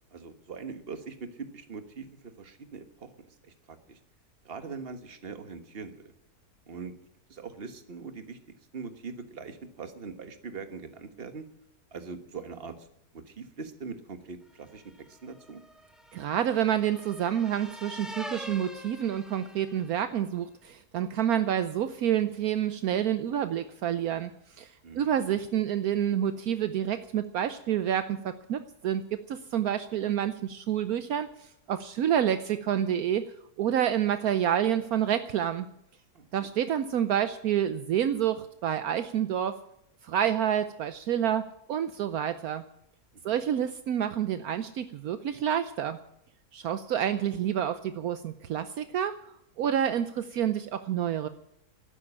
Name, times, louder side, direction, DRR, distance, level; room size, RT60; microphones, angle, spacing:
voice 1, 0.1-4.0 4.4-6.1 6.7-6.9 7.3-8.4 8.7-11.5 11.9-12.9 13.1-15.6 24.8-25.2 36.1-36.3 43.1-43.4, right 5 dB, 40° right, 9 dB, 1.5 m, -42 dB
sound 1, 14.7-20.1, equal, ahead, 1.5 m, -45 dB
voice 2, 16.1-24.3 24.6-35.7 36.3-39.6 40.0-42.6 43.2-46.0 46.5-49.1 49.6-51.3, right 10 dB, 70° right, 11 dB, 1.2 m, -28 dB
12.5 x 10.0 x 9.8 m, 0.78 s
omnidirectional pair, 1.7 m